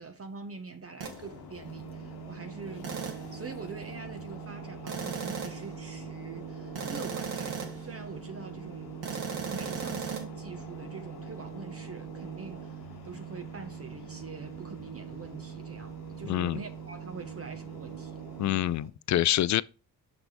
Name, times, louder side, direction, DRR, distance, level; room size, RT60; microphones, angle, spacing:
voice 1, 0.0-9.2 9.5-18.2, right 4 dB, 35° right, 1.0 m, -44 dB
sound 1, 1.0-18.9, left 9 dB, 70° left, 1.1 m, -50 dB
sound 2, 1.0-1.2 2.8-3.3 4.9-5.7 6.7-7.9 9.0-10.2, right 6 dB, 70° right, 1.8 m, -36 dB
sound 3, 1.6-18.9, right 9 dB, 50° right, 1.6 m, -43 dB
voice 2, 16.3-16.6 18.4-19.6, left 13 dB, 45° left, 0.4 m, -26 dB
6.0 x 5.0 x 4.9 m
supercardioid pair, 65°, 40 cm